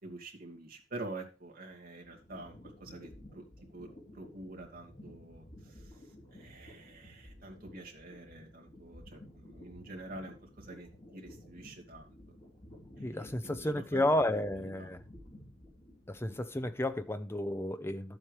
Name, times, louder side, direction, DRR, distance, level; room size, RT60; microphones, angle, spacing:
voice 1, 0.0-3.4 3.7-12.2 13.0-14.1 14.5-14.9, right 2 dB, 50° right, 2.2 m, -47 dB
sound 1, 1.7-17.1, left 1 dB, 30° left, 3.9 m, -54 dB
voice 2, 13.0-15.0 16.1-18.2, left 1 dB, 15° left, 0.6 m, -32 dB
12.0 x 7.5 x 3.3 m
head